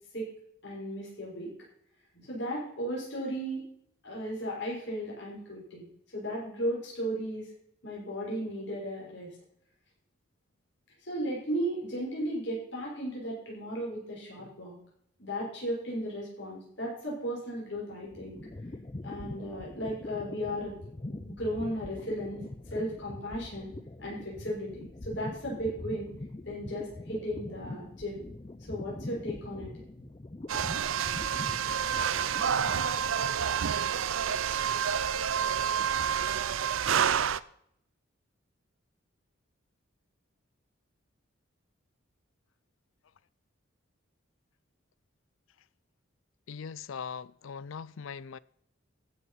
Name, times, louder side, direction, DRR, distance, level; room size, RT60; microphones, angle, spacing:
voice 1, 0.6-1.5 2.1-3.6 4.0-5.9 6.1-7.5 7.8-9.3 11.1-14.8 15.2-18.4 19.0-20.8 21.1-22.4 22.7-23.7 24.0-26.1 26.4-28.2 28.7-29.7, equal, 60° left, 6.4 m, -35 dB
sound 1, 17.7-33.2, left 2 dB, 25° left, 0.5 m, -43 dB
sound 2, 30.5-37.4, right 8 dB, 75° right, 0.5 m, -28 dB
voice 2, 46.5-48.4, left 6 dB, 75° left, 0.4 m, -40 dB
14.5 x 7.0 x 5.8 m
head